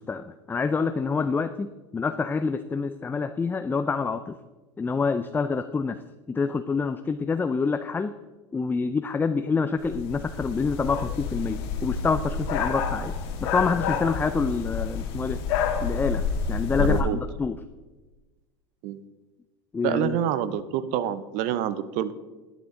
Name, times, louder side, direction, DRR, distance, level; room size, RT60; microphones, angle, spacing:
voice 1, 0.0-4.4 4.8-6.0 6.3-8.1 8.5-13.1 13.4-15.4 15.8-17.6 19.7-20.2, left 4 dB, 15° left, 10 dB, 0.4 m, -27 dB
sound 1, 9.8-17.0, left 6 dB, 70° left, 1.5 m, -29 dB
voice 2, 16.8-17.2 18.8-19.0 19.8-22.1, right 10 dB, 55° right, 15 dB, 0.6 m, -27 dB
11.0 x 9.3 x 3.7 m, 1.2 s
hypercardioid pair, 95°, 14 cm